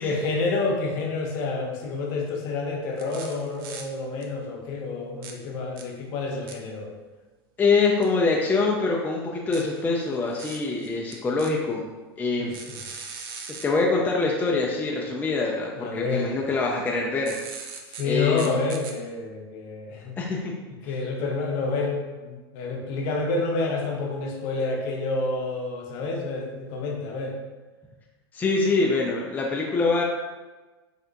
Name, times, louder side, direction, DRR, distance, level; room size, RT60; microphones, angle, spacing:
voice 1, 0.0-6.9 12.4-12.8 15.8-16.4 17.9-20.1 20.8-27.4, left 3 dB, 55° left, 1 dB, 0.7 m, -29 dB
sound 1, 3.0-3.8 4.2-4.3 5.2-5.3 5.8-5.9 6.5-6.6 8.0-8.1 9.5-11.5 12.5-13.6 17.2-18.0 18.4-18.9, right 5 dB, 65° right, 0.5 m, -39 dB
voice 2, 7.6-11.8 12.2-12.5 12.9-13.0 13.6-17.4 18.0-18.6 20.2-20.5 28.3-30.0, left 3 dB, 15° left, -2 dB, 0.3 m, -24 dB
3.3 x 2.7 x 2.5 m, 1.2 s
hypercardioid pair, 115°, 13 cm